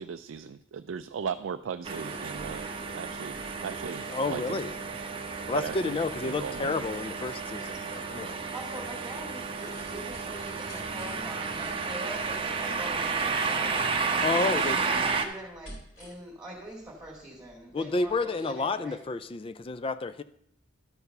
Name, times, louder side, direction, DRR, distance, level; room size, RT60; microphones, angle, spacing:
voice 1, 0.0-2.7 2.9-4.6 5.5-6.0 6.2-6.8, right 6 dB, 70° right, 0.4 m, -37 dB
sound 1, 1.8-15.3, right 4 dB, 25° right, 0.8 m, -32 dB
sound 2, 2.0-19.3 19.6-19.7, equal, 75° left, 4.2 m, -54 dB
voice 2, 4.1-4.8 5.5-8.4 14.2-14.8 17.7-20.2, left 3 dB, 25° left, 0.3 m, -30 dB
voice 3, 8.5-14.2 14.7-19.0, right 1 dB, 10° right, 2.1 m, -43 dB
11.5 x 4.7 x 6.6 m
head